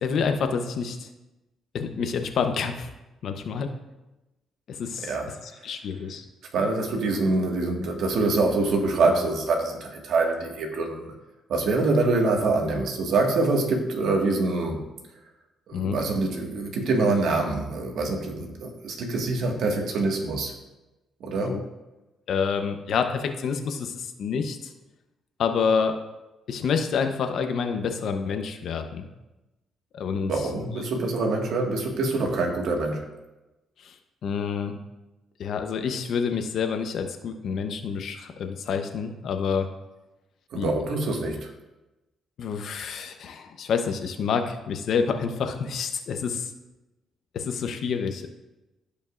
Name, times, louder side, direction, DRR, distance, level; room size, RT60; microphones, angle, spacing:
voice 1, 0.0-1.1 1.7-2.9 3.2-3.7 4.7-5.1 5.4-6.2 15.7-16.0 21.4-21.6 22.3-24.7 25.4-25.9 26.5-29.1 29.9-30.3 33.8-33.9 34.2-34.8 35.4-39.7 40.5-40.7 42.4-46.5 47.3-48.3, left 6 dB, 70° left, 6 dB, 0.9 m, -28 dB
voice 2, 6.5-11.1 11.5-14.8 15.7-20.5 21.2-21.5 30.3-33.0 40.5-41.4, right 3 dB, 70° right, 1 dB, 1.7 m, -25 dB
15.0 x 5.2 x 2.5 m, 1.0 s
cardioid pair, 90°, 0 cm